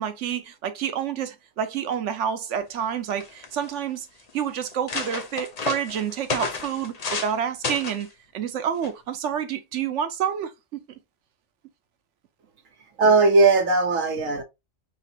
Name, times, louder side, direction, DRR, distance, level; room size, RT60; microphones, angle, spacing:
voice 1, 0.0-4.1 4.3-8.1 8.3-10.8, right 8 dB, 70° right, 1.0 m, -28 dB
sound 1, 2.8-2.9 3.1-3.7 4.3-4.4 4.7-7.4 7.6-8.1 8.8-9.1, left 4 dB, 40° left, 0.7 m, -31 dB
voice 2, 13.0-14.4, right 3 dB, 85° right, 1.3 m, -18 dB
5.8 x 2.8 x 2.8 m
omnidirectional pair, 1.3 m